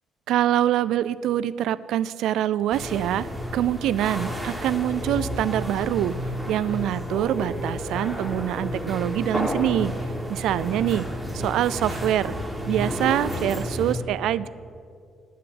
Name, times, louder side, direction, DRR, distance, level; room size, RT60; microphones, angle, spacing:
voice 1, 0.3-6.2 6.5-10.0 10.3-11.1 11.3-12.4 12.7-14.5, right 12 dB, 85° right, 17 dB, 0.4 m, -25 dB
sound 1, 2.7-13.9, equal, 5° right, 2.6 m, -31 dB
9.9 x 7.8 x 9.5 m, 2.3 s
cardioid pair, 105°, 0 cm